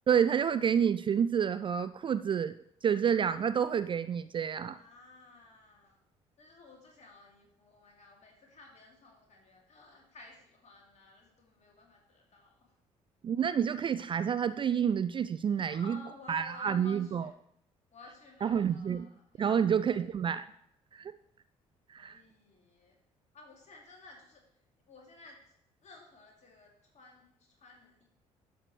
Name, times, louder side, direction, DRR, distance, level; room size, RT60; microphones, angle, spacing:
voice 1, 0.1-2.5 2.8-4.8 13.2-16.0 16.3-17.3 18.4-19.1 19.4-20.5 20.9-21.1 21.9-22.2, right 8 dB, 30° right, 13 dB, 0.3 m, -29 dB
voice 2, 4.7-6.0 6.4-12.7 15.6-17.3 17.9-20.1 22.0-23.0 23.3-24.4 24.9-25.4 25.8-28.0, left 3 dB, 45° left, 0 dB, 2.7 m, -55 dB
12.0 x 6.5 x 3.2 m, 0.73 s
figure-of-eight pair, 50°, 17 cm